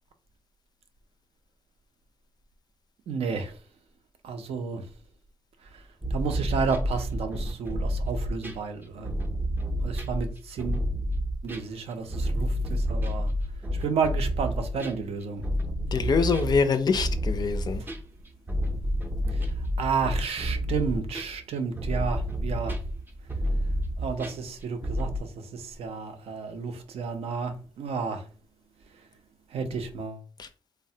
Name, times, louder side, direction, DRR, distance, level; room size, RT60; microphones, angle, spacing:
voice 1, 3.1-3.5 4.2-4.8 6.1-9.2 9.8-10.9 11.4-13.3 13.7-15.5 17.8-17.9 19.3-19.4 19.8-22.7 24.0-28.3 29.5-30.2, right 5 dB, 80° right, 0.4 m, -31 dB
sound 1, 6.0-25.2, equal, 20° right, 0.5 m, -29 dB
voice 2, 15.9-17.8 30.4-30.5, left 5 dB, 45° left, 0.4 m, -24 dB
3.1 x 2.0 x 2.6 m
cardioid pair, 95°, 10 cm